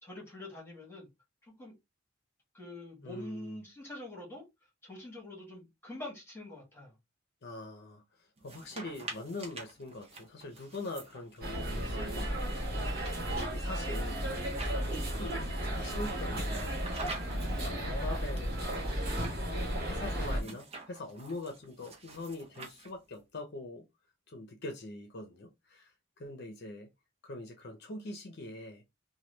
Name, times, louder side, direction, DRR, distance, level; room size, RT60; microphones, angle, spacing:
voice 1, 0.0-1.1 1.4-1.7 2.5-4.4 4.8-6.9, left 1 dB, 15° left, 1.4 m, -45 dB
voice 2, 3.0-3.7 7.4-23.8 24.3-26.9 27.2-28.8, left 2 dB, 55° left, 0.6 m, -44 dB
sound 1, 8.4-11.8 12.4-15.3 16.4-17.6 18.4-19.4 20.4-23.2, right 3 dB, 30° right, 0.8 m, -48 dB
sound 2, 11.4-20.4, equal, 50° right, 1.4 m, -34 dB
3.0 x 2.3 x 3.2 m
head